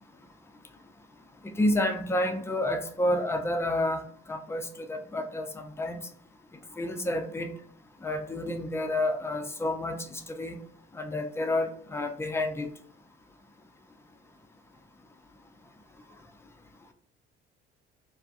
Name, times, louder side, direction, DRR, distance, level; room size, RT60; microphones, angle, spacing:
voice 1, 1.4-4.0 4.3-6.0 6.8-7.5 8.0-10.6 10.9-12.7, left 1 dB, 10° left, 6 dB, 0.4 m, -29 dB
2.3 x 2.2 x 2.4 m, 0.64 s
hypercardioid pair, 55°, 30 cm